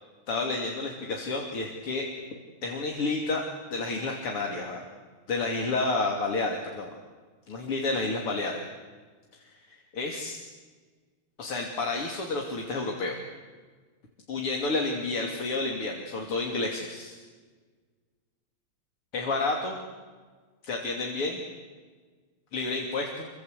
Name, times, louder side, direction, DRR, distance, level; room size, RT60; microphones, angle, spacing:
voice 1, 0.3-2.1 2.6-3.4 3.7-4.8 5.3-6.9 7.5-8.6 9.9-10.4 11.4-13.2 14.3-17.2 19.1-19.8 20.6-21.4 22.5-23.3, left 3 dB, 85° left, 1 dB, 3.9 m, -30 dB
28.5 x 25.0 x 8.3 m, 1.4 s
omnidirectional pair, 2.4 m